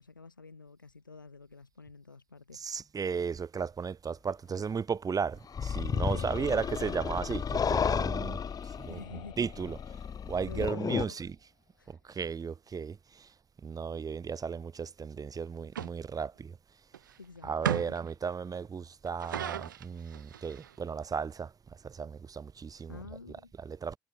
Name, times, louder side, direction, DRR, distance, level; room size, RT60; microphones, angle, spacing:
voice 1, 0.0-2.6 6.1-7.3 8.9-9.5 10.5-11.3 11.8-12.0 17.2-18.0 22.9-23.5, left 4 dB, 90° left, 5.5 m, -49 dB
voice 2, 2.5-9.0 9.4-9.8 10.3-11.4 11.9-13.3 13.6-16.6 17.4-24.0, right 6 dB, 35° right, 3.9 m, -35 dB
sound 1, 5.5-11.1, left 6 dB, 35° left, 1.7 m, -32 dB
horror pain, 8.1-12.2, left 16 dB, 60° left, 7.5 m, -57 dB
sound 2, 15.8-15.9 16.9-17.1 17.6-18.1 19.1-20.8, right 10 dB, 80° right, 0.8 m, -35 dB
figure-of-eight pair, 50°, 10 cm